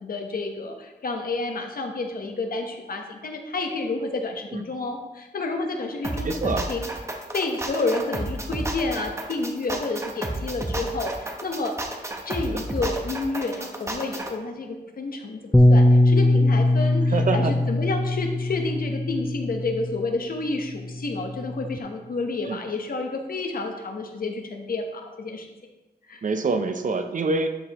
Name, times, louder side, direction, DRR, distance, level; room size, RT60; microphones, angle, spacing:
voice 1, 0.0-6.8 7.3-11.7 12.3-25.5 26.1-26.3, left 3 dB, 55° left, 4 dB, 1.0 m, -30 dB
sound 1, 6.0-14.3, right 1 dB, 15° right, 0.8 m, -31 dB
voice 2, 6.2-6.6 12.5-12.6 17.1-17.5 22.4-22.6 26.2-27.5, right 3 dB, 50° right, 7 dB, 0.6 m, -25 dB
Bass guitar, 15.5-20.0 20.8-21.8, left 1 dB, 5° left, 0.4 m, -20 dB
11.5 x 4.9 x 2.9 m, 1.1 s
wide cardioid pair, 120°, 17 cm